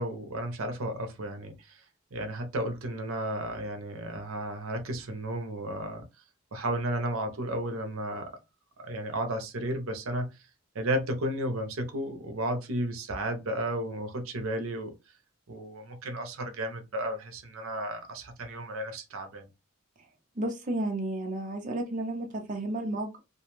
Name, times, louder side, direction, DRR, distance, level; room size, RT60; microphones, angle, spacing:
voice 1, 0.0-1.8 2.1-6.0 6.5-8.4 8.8-10.4 10.7-14.9 15.5-19.4, right 1 dB, 75° right, 0.7 m, -33 dB
voice 2, 20.4-23.2, right 1 dB, 40° right, 0.6 m, -32 dB
2.4 x 2.2 x 3.0 m
head